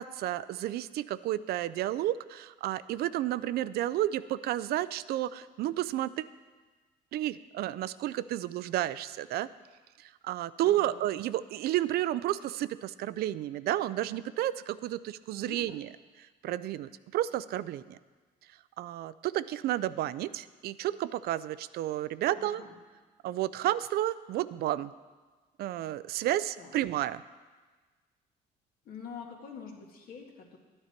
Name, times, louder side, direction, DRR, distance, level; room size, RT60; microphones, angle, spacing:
voice 1, 0.0-6.3 7.1-9.5 10.0-15.9 16.4-18.0 18.8-22.6 23.2-24.9 25.6-27.2, right 13 dB, 70° right, 16 dB, 0.4 m, -31 dB
voice 2, 10.6-11.0 15.5-15.8 22.3-22.7 26.6-26.8 28.9-30.6, left 6 dB, 60° left, 2 dB, 1.8 m, -46 dB
12.0 x 9.6 x 4.4 m, 1.3 s
cardioid pair, 110°, 17 cm